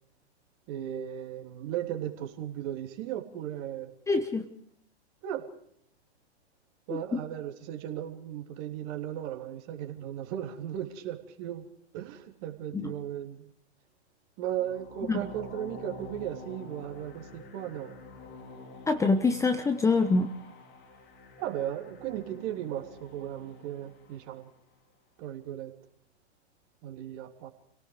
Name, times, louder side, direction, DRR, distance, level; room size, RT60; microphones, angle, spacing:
voice 1, 0.7-3.9 5.2-5.5 6.9-11.7 11.9-13.4 14.4-17.9 21.4-24.5 25.2-25.7 26.8-27.5, right 11 dB, 40° right, 4 dB, 3.3 m, -36 dB
voice 2, 4.1-4.5 6.9-7.2 12.7-12.9 15.1-15.2 18.9-20.3, left 3 dB, 10° left, 9 dB, 1.0 m, -25 dB
sound 1, 14.5-24.6, left 3 dB, 30° left, 3.8 m, -48 dB
30.0 x 18.0 x 5.0 m, 0.66 s
hypercardioid pair, 120°, 34 cm